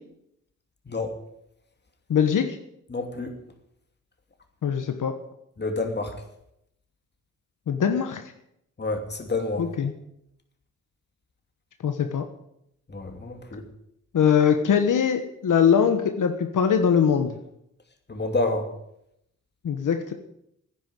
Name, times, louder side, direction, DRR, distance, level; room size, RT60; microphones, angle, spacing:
voice 1, 2.1-2.6 4.6-5.1 7.7-8.2 9.6-9.9 11.8-12.2 14.1-17.3 19.6-20.1, left 7 dB, 75° left, 6 dB, 1.3 m, -22 dB
voice 2, 2.9-3.4 5.6-6.1 8.8-9.7 12.9-13.6 18.1-18.7, left 2 dB, 35° left, 4 dB, 2.7 m, -28 dB
10.0 x 10.0 x 9.8 m, 0.78 s
wide cardioid pair, 100°, 32 cm